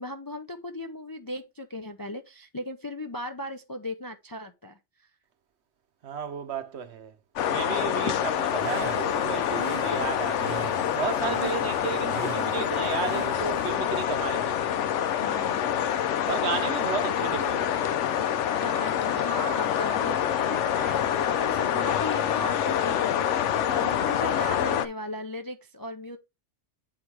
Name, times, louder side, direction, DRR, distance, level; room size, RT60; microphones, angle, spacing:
voice 1, 0.0-5.1 7.7-8.2 15.2-15.8 18.2-26.2, left 1 dB, 30° left, 0.4 m, -37 dB
voice 2, 6.0-7.1 7.4-10.6 10.9-14.8 16.3-17.8, right 7 dB, 65° right, 1.1 m, -33 dB
sound 1, 7.4-24.9, left 9 dB, 80° left, 0.9 m, -26 dB
sound 2, 8.3-13.7, right 6 dB, 45° right, 0.9 m, -40 dB
8.0 x 3.8 x 4.6 m
omnidirectional pair, 1.2 m